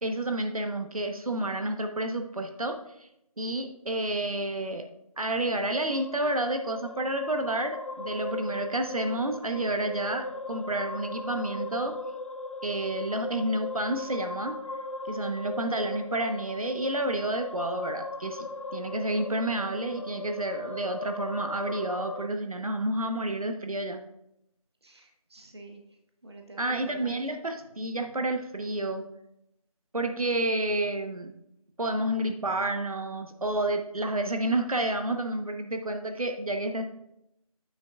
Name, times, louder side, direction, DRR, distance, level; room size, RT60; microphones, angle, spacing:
voice 1, 0.0-3.1 3.4-4.8 5.2-11.9 12.6-14.6 15.0-24.0 26.6-29.1 29.9-31.3 31.8-36.8, right 1 dB, 65° right, 5 dB, 1.1 m, -30 dB
sound 1, 5.9-22.3, left 2 dB, 55° left, 0.6 m, -38 dB
voice 2, 24.8-25.8 26.2-27.2, right 1 dB, 45° right, 3 dB, 1.0 m, -47 dB
9.2 x 7.9 x 2.4 m, 0.80 s
figure-of-eight pair, 175°, 19 cm